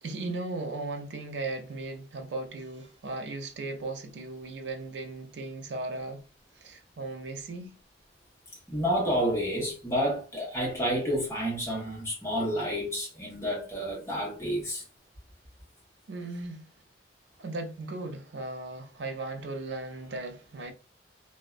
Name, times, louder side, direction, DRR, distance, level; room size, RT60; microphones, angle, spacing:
voice 1, 0.0-6.2 6.5-7.8 16.1-16.7 17.4-20.7, right 2 dB, 70° right, 0.5 m, -37 dB
voice 2, 8.7-14.8, equal, 15° left, 0.9 m, -29 dB
2.5 x 2.1 x 2.3 m
head